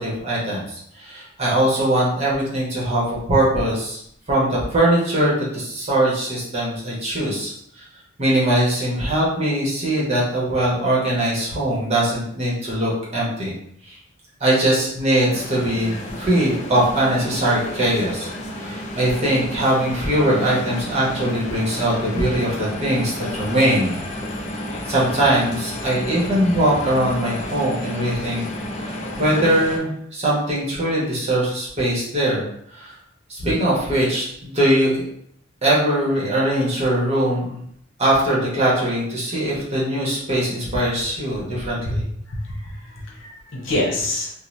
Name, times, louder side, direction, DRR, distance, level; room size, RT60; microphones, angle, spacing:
voice 1, 0.0-4.0 4.3-7.8 8.2-13.5 13.9-14.0 14.4-18.3 18.5-23.9 24.8-28.4 28.8-32.4 32.7-32.9 33.3-35.0 35.6-37.6 38.0-42.0, right 1 dB, 30° right, -6 dB, 1.0 m, -21 dB
sound 1, 15.3-29.8, left 1 dB, 35° left, 0.4 m, -31 dB
voice 2, 42.3-44.3, left 1 dB, 70° left, -2 dB, 0.8 m, -26 dB
2.7 x 2.1 x 3.1 m, 0.69 s
head